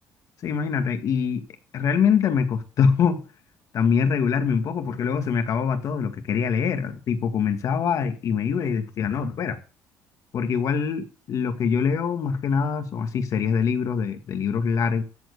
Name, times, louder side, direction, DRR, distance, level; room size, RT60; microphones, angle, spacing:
voice 1, 0.4-1.4 1.7-3.2 3.7-9.6 10.3-15.0, left 6 dB, 55° left, 2.0 m, -24 dB
14.0 x 4.7 x 8.3 m
cardioid pair, 115°, 6 cm